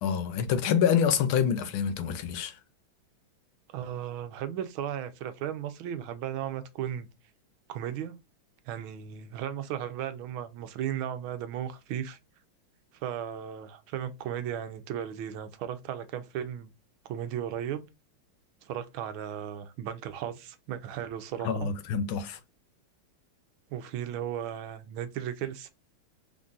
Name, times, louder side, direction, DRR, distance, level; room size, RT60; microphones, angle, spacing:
voice 1, 0.0-2.6 21.4-22.4, left 7 dB, 80° left, 1.6 m, -26 dB
voice 2, 3.7-7.1 7.7-8.2 8.7-12.2 12.9-16.7 17.0-17.8 18.6-21.7 23.7-25.7, right 10 dB, 80° right, 1.5 m, -35 dB
4.5 x 3.7 x 2.5 m
omnidirectional pair, 2.3 m